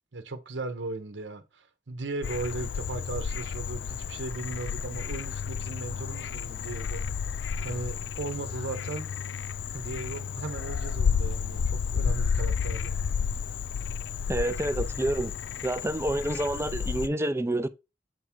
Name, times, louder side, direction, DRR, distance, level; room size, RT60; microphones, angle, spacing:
voice 1, 0.1-7.0 7.6-9.1 9.7-12.9, right 3 dB, 90° right, 1.0 m, -37 dB
Frog, 2.2-17.1, left 6 dB, 80° left, 0.4 m, -31 dB
voice 2, 14.3-15.3 15.6-17.7, right 1 dB, 15° right, 0.5 m, -28 dB
7.7 x 3.6 x 4.5 m
head